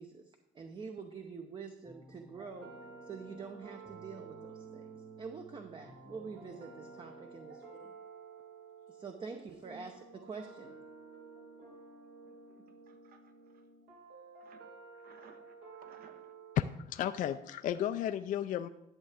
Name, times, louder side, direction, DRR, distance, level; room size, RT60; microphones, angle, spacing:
voice 1, 0.0-2.7 3.0-7.9 8.9-10.7, right 5 dB, 30° right, 5 dB, 0.7 m, -46 dB
sound 1, 1.8-7.7, right 1 dB, 5° right, 1.1 m, -55 dB
sound 2, 2.3-16.6, right 5 dB, 85° right, 3.7 m, -53 dB
voice 2, 7.5-7.9 9.3-9.9 12.2-13.7 14.4-16.3, right 6 dB, 60° right, 6 dB, 1.2 m, -59 dB
voice 3, 16.6-18.7, left 11 dB, 50° left, 10 dB, 0.4 m, -33 dB
11.0 x 7.4 x 3.5 m, 0.89 s
cardioid pair, 110°, 17 cm